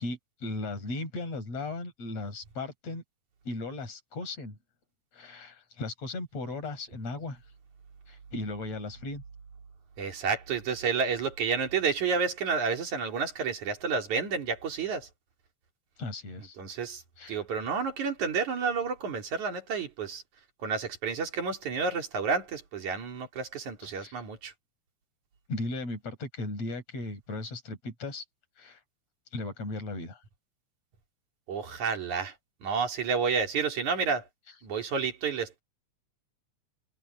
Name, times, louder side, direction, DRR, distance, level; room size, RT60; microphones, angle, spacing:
voice 1, 0.0-3.0 3.5-4.6 5.1-7.4 8.1-9.2 16.0-16.6 17.2-17.4 23.9-24.2 25.5-28.2 28.6-28.8 29.3-30.2, left 2 dB, 60° left, 7.4 m, -36 dB
voice 2, 10.0-15.1 16.6-17.0 17.3-20.2 20.6-24.5 31.5-32.3 32.6-34.3 34.6-35.6, right 5 dB, 80° right, 4.7 m, -30 dB
omnidirectional pair, 3.4 m